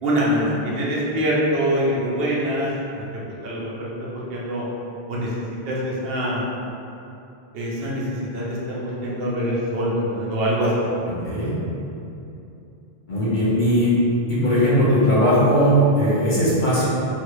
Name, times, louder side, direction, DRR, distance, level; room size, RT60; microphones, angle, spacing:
voice 1, 0.0-2.7 2.9-3.0 3.4-4.7 5.1-6.4 7.5-10.7, equal, 70° right, -6 dB, 0.9 m, -24 dB
voice 2, 13.1-13.9 14.3-16.8, equal, 50° left, -10 dB, 1.1 m, -18 dB
3.3 x 2.4 x 3.0 m, 2.8 s
omnidirectional pair, 1.1 m